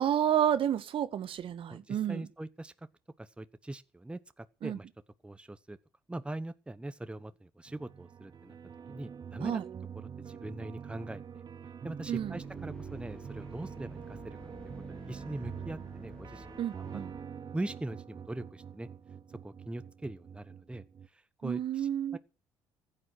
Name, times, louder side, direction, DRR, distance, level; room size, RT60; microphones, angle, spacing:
voice 1, 0.0-2.3 4.6-4.8 9.4-9.6 12.1-12.4 16.6-17.1 21.4-22.2, right 10 dB, 55° right, 1.3 m, -30 dB
voice 2, 1.7-2.7 3.2-4.9 5.2-5.8 6.1-8.6 8.9-9.6 10.2-11.4 11.8-14.4 14.9-16.9 17.2-17.3 17.5-18.9 19.4-20.8 21.1-22.2, right 1 dB, 10° right, 1.0 m, -41 dB
sound 1, 7.7-21.1, right 7 dB, 40° right, 0.9 m, -45 dB
sound 2, 12.0-17.2, left 2 dB, 10° left, 1.6 m, -51 dB
15.0 x 8.9 x 8.1 m
hypercardioid pair, 55°, 11 cm